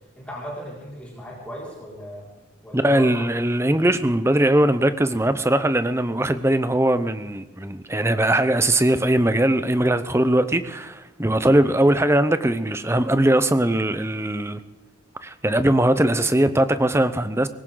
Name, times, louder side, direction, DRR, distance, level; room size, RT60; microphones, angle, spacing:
voice 1, 0.1-2.3 2.6-3.3, equal, 5° left, 5.3 m, -36 dB
voice 2, 2.7-14.6 15.2-17.5, right 1 dB, 15° right, 0.7 m, -20 dB
20.5 x 17.5 x 3.9 m
head